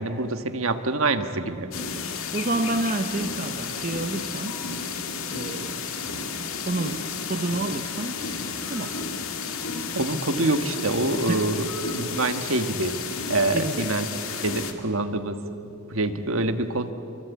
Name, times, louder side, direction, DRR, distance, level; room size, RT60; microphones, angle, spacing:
voice 1, 0.0-1.7 9.9-13.0 13.3-15.4 15.9-16.9, right 2 dB, 65° right, 8 dB, 1.5 m, -26 dB
sound 1, 1.7-14.7, left 5 dB, 65° left, 2.0 m, -32 dB
voice 2, 2.3-4.6 5.3-5.8 6.7-8.2 8.6-9.0 11.3-11.5 13.5-13.9, right 2 dB, 35° right, 8 dB, 0.7 m, -29 dB
25.0 x 24.0 x 8.4 m, 2.7 s
head